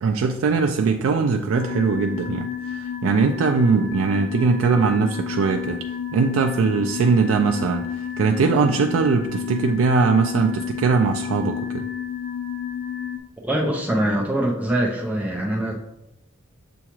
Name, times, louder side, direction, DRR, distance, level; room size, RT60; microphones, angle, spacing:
voice 1, 0.0-5.8 6.1-11.9, right 5 dB, 80° right, 3 dB, 0.3 m, -21 dB
sound 1, 1.5-13.2, left 8 dB, 40° left, 0.4 m, -30 dB
voice 2, 13.4-15.8, right 1 dB, 5° right, -2 dB, 0.6 m, -23 dB
6.9 x 2.4 x 3.0 m, 0.86 s
head